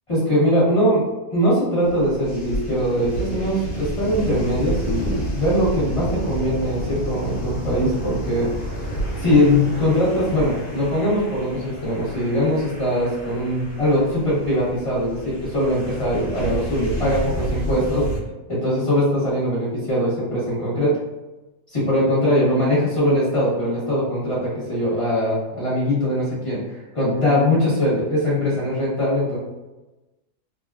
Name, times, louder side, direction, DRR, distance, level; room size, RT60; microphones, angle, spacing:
voice 1, 0.1-1.0 1.3-8.5 9.2-18.1 18.5-21.0 21.7-26.6 26.9-29.4, equal, 25° left, -8 dB, 1.1 m, -21 dB
sound 1, 1.8-18.2, right 1 dB, 70° left, 1.1 m, -30 dB
3.1 x 2.3 x 2.4 m, 1.1 s
omnidirectional pair, 1.7 m